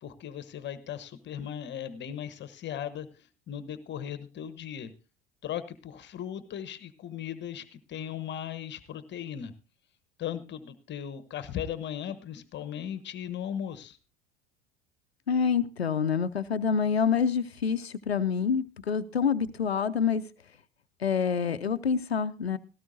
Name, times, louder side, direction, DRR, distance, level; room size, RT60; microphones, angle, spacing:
voice 1, 0.0-4.9 5.4-9.5 10.2-14.0, left 9 dB, 35° left, 13 dB, 1.1 m, -37 dB
voice 2, 15.3-20.2 21.0-22.6, left 6 dB, 90° left, 11 dB, 0.5 m, -27 dB
17.0 x 13.5 x 2.6 m, 0.31 s
figure-of-eight pair, 70°, 31 cm